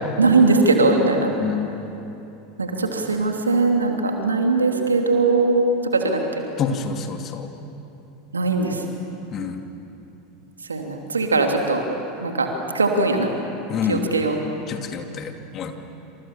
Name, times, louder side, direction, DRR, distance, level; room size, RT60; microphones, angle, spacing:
voice 1, 0.2-1.3 2.6-6.4 8.3-8.8 10.7-11.8 12.2-12.5 12.7-13.3 13.9-14.4, right 3 dB, 85° right, 3 dB, 2.9 m, -20 dB
voice 2, 1.4-1.7 6.6-7.5 9.3-9.6 13.7-14.0 14.7-15.7, left 6 dB, 40° left, 5 dB, 2.6 m, -27 dB
28.0 x 27.5 x 7.5 m, 2.9 s
figure-of-eight pair, 80°, 0 cm